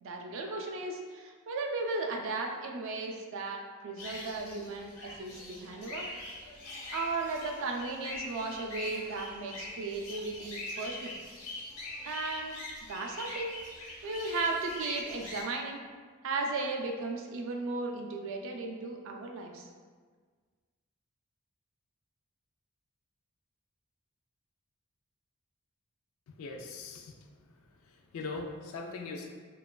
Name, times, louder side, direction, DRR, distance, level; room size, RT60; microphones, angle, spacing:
voice 1, 0.0-6.0 6.9-11.2 12.0-13.5 14.0-15.8 16.2-19.6, right 3 dB, 60° right, 2 dB, 0.3 m, -36 dB
sound 1, 4.0-15.4, left 2 dB, 80° left, 0.7 m, -43 dB
voice 2, 26.4-27.1 28.1-29.3, left 3 dB, 65° left, 3 dB, 0.3 m, -40 dB
2.9 x 2.3 x 2.2 m, 1.5 s
head